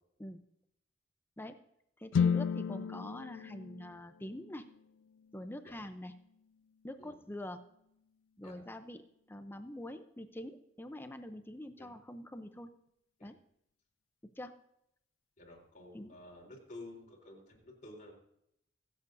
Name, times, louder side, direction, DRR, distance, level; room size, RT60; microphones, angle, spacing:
voice 1, 2.0-4.7 5.3-6.1 6.8-7.6 8.4-12.7 13.2-13.4 14.4-14.6 15.9-16.1, left 1 dB, 10° left, 9 dB, 0.6 m, -45 dB
sound 1, 2.1-6.2, left 6 dB, 85° left, 0.3 m, -35 dB
voice 2, 15.4-18.1, left 2 dB, 45° left, -1 dB, 3.8 m, -51 dB
24.5 x 8.2 x 2.7 m, 0.76 s
head